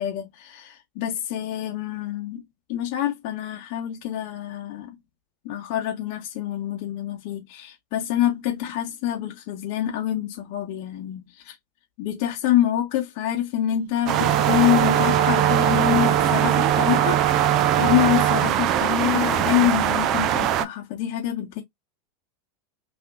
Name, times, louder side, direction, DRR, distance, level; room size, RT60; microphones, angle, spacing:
voice 1, 0.0-2.4 2.7-5.0 5.4-11.6 12.0-17.2 17.8-21.6, left 12 dB, 60° left, 0.8 m, -26 dB
sound 1, 14.1-20.7, right 10 dB, 45° right, 0.4 m, -23 dB
Wind instrument woodwind instrument, 14.1-18.6, right 10 dB, 70° right, 0.9 m, -23 dB
3.6 x 2.6 x 2.4 m
hypercardioid pair, 90°, 0 cm